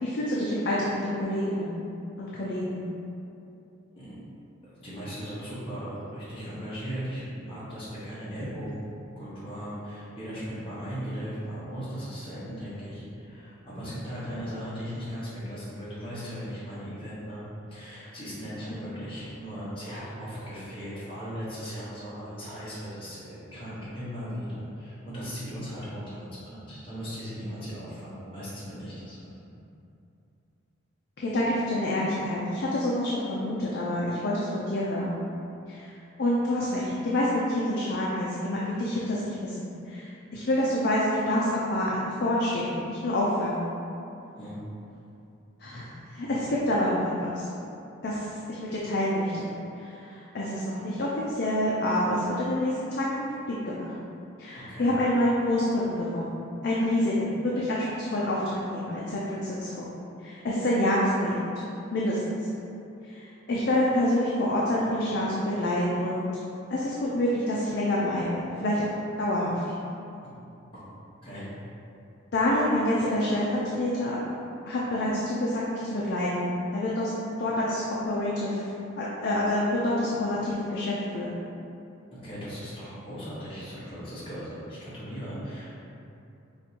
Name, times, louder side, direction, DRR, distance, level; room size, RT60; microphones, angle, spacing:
voice 1, 0.0-1.8 2.2-2.9 18.7-18.9 31.2-35.2 35.7-35.8 36.2-43.7 45.6-47.5 48.0-53.9 54.4-56.4 56.6-59.9 60.2-61.4 61.9-62.2 63.0-66.2 66.7-68.9 69.2-69.6 72.3-74.2 74.7-77.1 77.4-78.7 79.0-81.3, left 1 dB, 55° left, -5 dB, 0.4 m, -27 dB
voice 2, 4.8-8.8 9.1-17.4 17.7-29.3 44.4-44.6 54.7-54.9 70.2-70.3 71.2-71.5 82.2-85.8, equal, 25° left, -11 dB, 1.1 m, -37 dB
4.9 x 2.5 x 2.8 m, 2.7 s
head